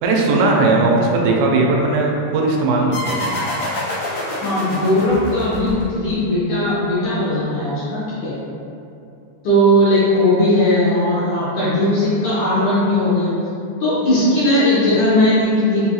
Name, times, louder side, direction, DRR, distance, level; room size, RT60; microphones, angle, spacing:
voice 1, 0.0-3.4, right 2 dB, 90° right, -1 dB, 2.8 m, -17 dB
sound 1, 2.9-6.2, left 1 dB, 70° left, 3.0 m, -26 dB
voice 2, 4.3-8.3 9.4-13.3 13.8-15.8, left 1 dB, 90° left, -12 dB, 1.6 m, -18 dB
6.5 x 2.8 x 2.3 m, 2.6 s
omnidirectional pair, 4.9 m